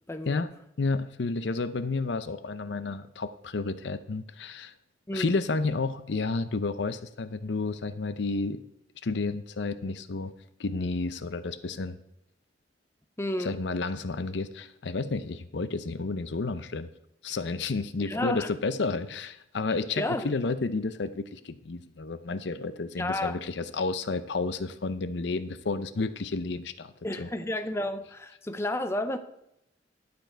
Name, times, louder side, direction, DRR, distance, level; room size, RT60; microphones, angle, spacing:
voice 1, 0.1-0.5 5.1-5.4 13.2-13.6 18.0-18.5 19.7-20.3 23.0-23.4 27.0-29.2, left 1 dB, 15° left, 8 dB, 0.6 m, -31 dB
voice 2, 0.8-4.7 5.1-8.6 9.0-10.3 10.6-12.0 13.4-16.9 17.2-26.9 27.2-27.3, left 3 dB, 70° left, 12 dB, 0.6 m, -31 dB
11.5 x 7.0 x 4.5 m, 0.79 s
head